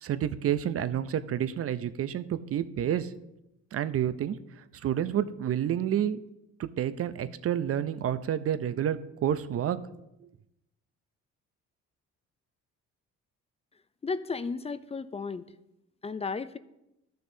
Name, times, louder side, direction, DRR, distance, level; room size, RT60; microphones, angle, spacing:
voice 1, 0.0-3.1 3.7-4.4 4.8-6.2 6.6-9.8, right 10 dB, 50° right, 13 dB, 0.6 m, -29 dB
voice 2, 14.0-15.5 16.0-16.6, left 4 dB, 20° left, 13 dB, 0.4 m, -34 dB
14.0 x 6.5 x 2.7 m, 0.89 s
cardioid pair, 90°, 30 cm